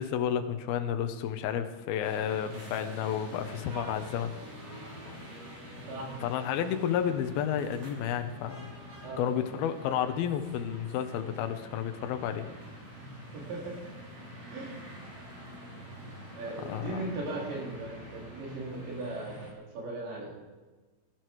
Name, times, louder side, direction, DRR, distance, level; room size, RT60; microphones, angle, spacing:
voice 1, 0.0-4.3 6.2-8.7 9.2-12.5 16.6-17.0, left 9 dB, 70° left, 9 dB, 2.5 m, -31 dB
sound 1, 2.0-19.5, equal, 40° right, 3.6 m, -46 dB
voice 2, 5.9-6.2 9.0-9.5 12.9-13.8 14.5-14.8 16.3-20.3, right 2 dB, 75° right, -2 dB, 5.8 m, -38 dB
20.0 x 12.0 x 4.7 m, 1.3 s
omnidirectional pair, 5.2 m